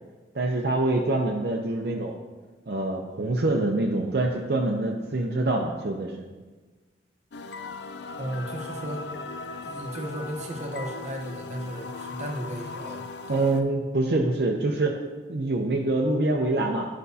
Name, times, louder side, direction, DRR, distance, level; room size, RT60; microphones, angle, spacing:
voice 1, 0.3-2.1 2.7-6.1 13.3-15.0 15.3-16.9, right 2 dB, 60° right, 0 dB, 0.6 m, -25 dB
sound 1, 7.3-13.6, left 3 dB, 70° left, 0.4 m, -38 dB
voice 2, 8.2-9.1 9.6-13.6, right 1 dB, 40° right, 2 dB, 0.9 m, -35 dB
11.5 x 5.2 x 2.8 m, 1.3 s
head